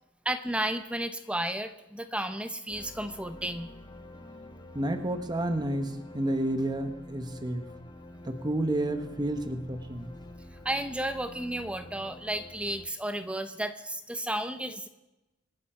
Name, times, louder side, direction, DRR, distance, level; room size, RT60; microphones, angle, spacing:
voice 1, 0.2-3.7 10.6-14.9, right 1 dB, 5° right, 9 dB, 0.9 m, -33 dB
sound 1, 2.7-12.9, left 1 dB, 20° left, 1.5 m, -48 dB
voice 2, 4.7-7.7 8.2-10.1, right 1 dB, 20° right, 6 dB, 1.3 m, -30 dB
26.0 x 10.0 x 4.5 m, 0.97 s
head